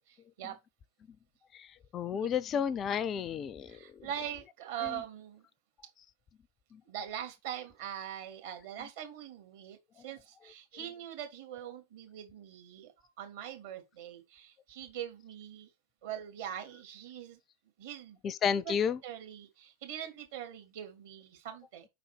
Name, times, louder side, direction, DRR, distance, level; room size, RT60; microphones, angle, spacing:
voice 1, 0.1-0.6 3.7-5.4 6.8-15.7 16.0-17.4 17.8-18.2 18.6-18.8 19.0-21.9, right 10 dB, 55° right, 2.2 m, -42 dB
voice 2, 1.5-4.1 4.8-5.0 6.7-6.8 18.2-19.0, left 7 dB, 30° left, 0.4 m, -32 dB
5.6 x 4.0 x 5.8 m
figure-of-eight pair, 90°, 0 cm